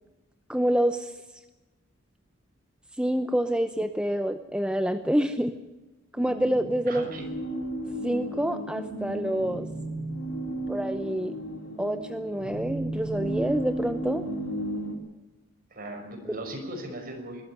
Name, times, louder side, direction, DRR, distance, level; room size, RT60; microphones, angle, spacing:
voice 1, 0.5-1.1 3.0-5.5 6.1-7.1 8.0-9.7 10.7-11.3 11.8-14.3, equal, 5° right, 8 dB, 0.8 m, -27 dB
sound 1, 6.2-14.9, right 1 dB, 75° left, 4.0 m, -34 dB
voice 2, 6.8-7.3 15.7-17.4, right 1 dB, 45° right, 4 dB, 5.7 m, -38 dB
21.5 x 13.5 x 9.8 m, 1.1 s
head